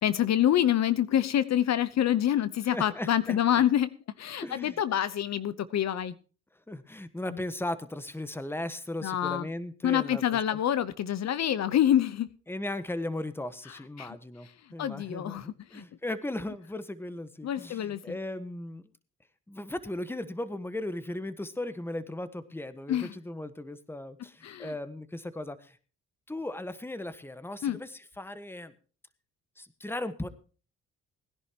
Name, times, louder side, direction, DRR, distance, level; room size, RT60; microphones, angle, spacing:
voice 1, 0.0-3.9 4.2-6.2 7.3-7.4 9.0-9.5 9.8-12.3 13.7-14.2 14.8-15.8 17.4-18.1 22.9-23.1 24.4-24.7 27.6-27.8, left 11 dB, 60° left, 15 dB, 0.9 m, -27 dB
voice 2, 2.7-3.4 4.4-4.8 6.7-10.6 12.5-18.8 19.5-25.8 26.3-28.7 29.6-30.3, left 1 dB, 5° left, 12 dB, 1.3 m, -37 dB
20.5 x 11.0 x 2.9 m, 0.38 s
cardioid pair, 90°, 30 cm